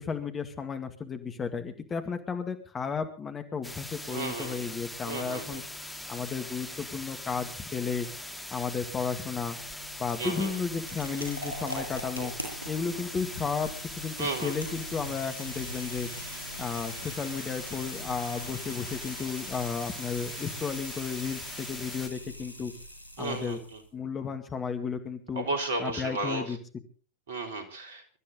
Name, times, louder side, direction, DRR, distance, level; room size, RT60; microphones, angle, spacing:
voice 1, 0.0-5.6 6.1-8.1 8.5-9.6 10.0-12.3 12.7-13.7 14.0-16.1 16.6-22.7 23.2-23.6 23.9-25.5 25.8-26.6, left 5 dB, 20° left, 7 dB, 2.1 m, -33 dB
sound 1, 3.6-22.1, left 1 dB, 5° left, 2.3 m, -41 dB
voice 2, 4.1-4.6 5.1-5.6 10.2-10.5 14.2-14.6 23.2-23.8 25.4-26.4 27.3-28.0, right 3 dB, 60° right, 6 dB, 3.6 m, -33 dB
sound 2, 9.0-23.9, equal, 85° right, 8.0 m, -42 dB
24.5 x 13.0 x 3.8 m, 0.38 s
figure-of-eight pair, 90°, 0 cm